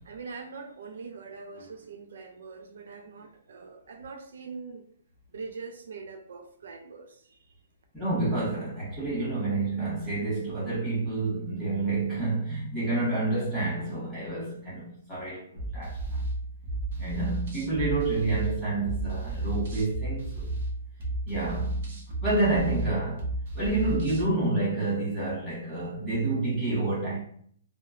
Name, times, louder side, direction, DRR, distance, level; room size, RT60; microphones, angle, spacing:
voice 1, 0.0-4.8 5.3-7.6, right 4 dB, 70° right, 0.3 m, -43 dB
voice 2, 7.9-16.3 17.0-20.5 21.2-21.8 22.2-23.3 23.5-27.2, right 2 dB, 5° right, 1.3 m, -29 dB
sound 1, 15.6-24.3, right 2 dB, 50° right, 0.8 m, -33 dB
2.8 x 2.0 x 2.4 m
hypercardioid pair, 160°, 0 cm